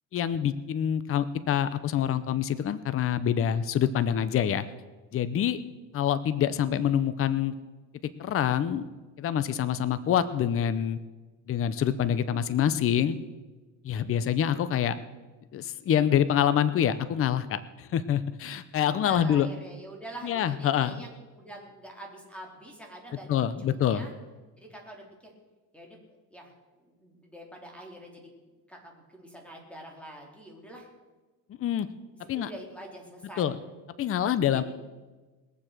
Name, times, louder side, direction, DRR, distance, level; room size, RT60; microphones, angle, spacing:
voice 1, 0.1-4.6 5.1-5.6 5.9-7.5 8.2-8.9 9.2-11.0 11.5-13.2 13.8-15.0 15.5-19.5 20.2-21.0 23.3-24.1 31.6-31.9 32.3-32.5 33.4-33.6 34.0-34.6, left 9 dB, 40° left, 14 dB, 0.7 m, -26 dB
voice 2, 13.9-14.3 14.6-14.9 18.9-24.1 24.6-25.3 25.7-26.0 26.3-28.3 28.7-30.9 32.3-33.5 34.4-34.6, right 1 dB, 5° left, 0 dB, 3.4 m, -45 dB
21.0 x 7.5 x 6.6 m, 1.2 s
cardioid pair, 125°, 36 cm